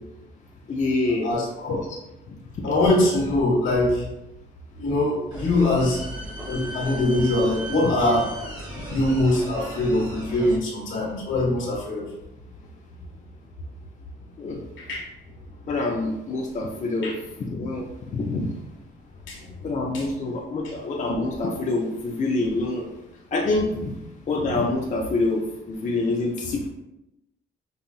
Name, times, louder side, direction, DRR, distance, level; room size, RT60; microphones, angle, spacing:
voice 1, 0.7-1.3 1.7-1.8 2.3-2.7 7.8-7.9 8.8-9.0 14.4-14.6 15.7-18.5 19.6-22.9 23.3-24.0 24.3-26.7, left 2 dB, 40° left, -1 dB, 0.5 m, -26 dB
voice 2, 1.2-1.8 2.6-4.0 4.8-6.0 6.5-8.3 8.9-12.1 14.8-15.0 17.0-17.1 19.3-19.4 19.9-20.0, left 1 dB, 75° left, -4 dB, 1.4 m, -22 dB
sound 1, 5.3-10.6, right 1 dB, 20° right, 1.4 m, -36 dB
5.4 x 2.5 x 2.4 m, 0.91 s
cardioid pair, 90°, 20 cm